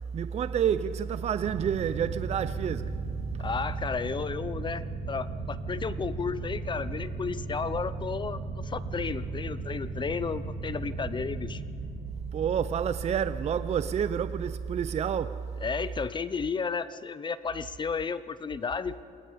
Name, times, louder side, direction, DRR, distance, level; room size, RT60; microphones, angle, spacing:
voice 1, 0.1-3.0 12.3-15.5, right 8 dB, 40° right, 0.6 m, -29 dB
sound 1, 1.4-14.6, right 3 dB, 80° right, 3.5 m, -37 dB
voice 2, 3.4-11.6 15.6-19.0, left 5 dB, 30° left, 0.7 m, -33 dB
28.0 x 21.5 x 5.2 m
cardioid pair, 110°, 17 cm